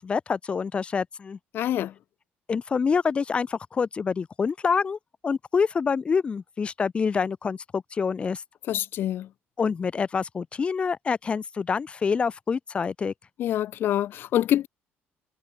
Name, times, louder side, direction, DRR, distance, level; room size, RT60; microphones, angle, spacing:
voice 1, 0.0-1.4 2.5-5.0 5.2-8.4 9.6-13.1, left 5 dB, 25° left, 5.3 m, -26 dB
voice 2, 1.5-1.9 8.7-9.3 13.4-14.7, left 12 dB, 55° left, 2.8 m, -25 dB
cardioid pair, 155°, 4 cm